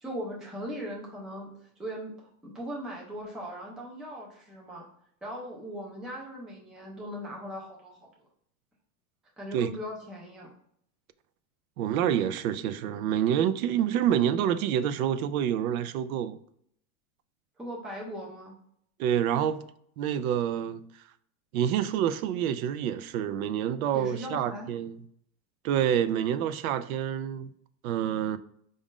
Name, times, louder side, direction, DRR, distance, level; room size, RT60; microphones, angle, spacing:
voice 1, 0.0-1.5 1.8-4.9 5.2-8.1 9.4-10.5 17.6-18.5 23.9-24.7, equal, ahead, 0.3 m, -39 dB
voice 2, 11.8-16.4 19.0-19.6 20.0-20.8 21.5-25.0 25.6-27.5 27.8-28.4, right 9 dB, 75° right, 0.5 m, -27 dB
4.9 x 2.6 x 3.6 m
supercardioid pair, 150°, 42 cm